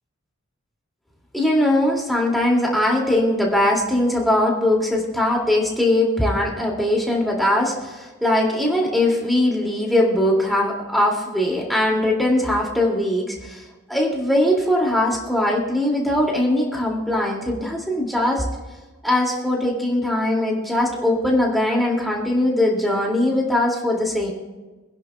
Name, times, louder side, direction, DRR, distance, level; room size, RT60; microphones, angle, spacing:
voice 1, 1.3-18.4 19.0-24.3, left 1 dB, ahead, -3 dB, 2.4 m, -21 dB
26.0 x 10.5 x 2.3 m, 1.2 s
head